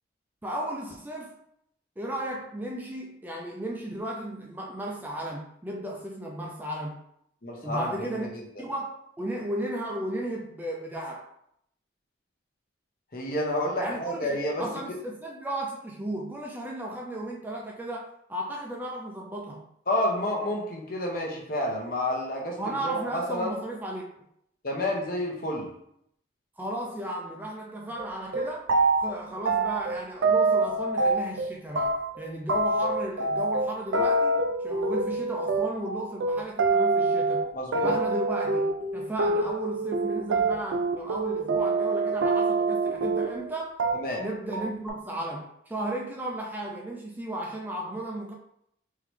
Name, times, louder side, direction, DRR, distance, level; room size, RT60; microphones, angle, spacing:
voice 1, 0.4-1.3 2.0-6.9 7.6-8.3 8.6-11.3 13.8-19.6 22.6-24.0 26.6-28.6 29.0-34.4 34.6-37.4 37.7-38.6 38.9-43.7 44.2-48.3, right 1 dB, 10° right, -1 dB, 0.4 m, -34 dB
voice 2, 7.4-8.4 13.1-14.6 19.9-23.6 24.6-25.7 37.5-38.0 43.9-44.2, left 1 dB, 50° left, -1 dB, 0.8 m, -30 dB
sound 1, 28.0-28.1 28.3-29.2 29.4-31.5 31.8-43.5 43.8-44.3 44.5-44.9, right 3 dB, 80° right, 0.4 m, -25 dB
3.8 x 3.1 x 3.2 m, 0.73 s
head